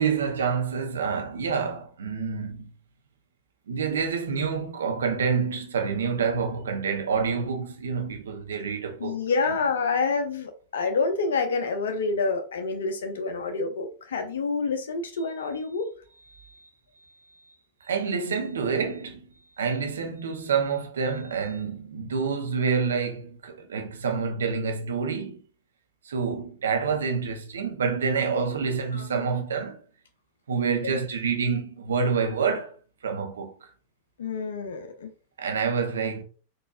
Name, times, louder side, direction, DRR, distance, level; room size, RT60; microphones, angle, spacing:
voice 1, 0.0-2.7 3.7-9.2 16.3-16.7 17.8-19.3 19.6-25.4 26.0-29.8 30.5-32.7 33.0-33.7 35.4-36.2, right 5 dB, 65° right, 0.6 m, -27 dB
voice 2, 9.0-15.9 28.9-29.3 30.8-30.9 34.2-35.1, left 4 dB, 65° left, 0.6 m, -28 dB
4.0 x 2.5 x 2.3 m
figure-of-eight pair, 90°, 0 cm